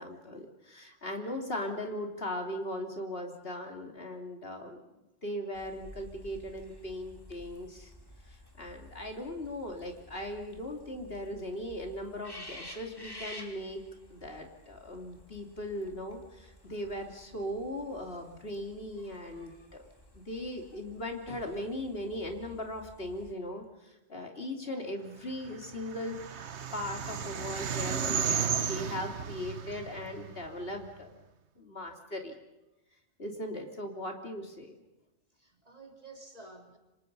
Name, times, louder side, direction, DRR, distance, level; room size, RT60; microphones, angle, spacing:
voice 1, 0.0-4.8 5.2-7.9 8.3-13.8 14.1-19.9 20.1-26.2 26.7-31.2 31.6-32.4 33.2-34.7, left 1 dB, 55° left, 2 dB, 3.4 m, -39 dB
sound 1, 5.5-23.3, left 1 dB, 20° left, 3.2 m, -52 dB
sound 2, 25.5-30.9, right 7 dB, 65° right, 1.3 m, -34 dB
voice 2, 35.3-36.8, right 3 dB, 30° right, 2 dB, 3.3 m, -52 dB
29.0 x 26.0 x 5.5 m, 0.97 s
omnidirectional pair, 1.2 m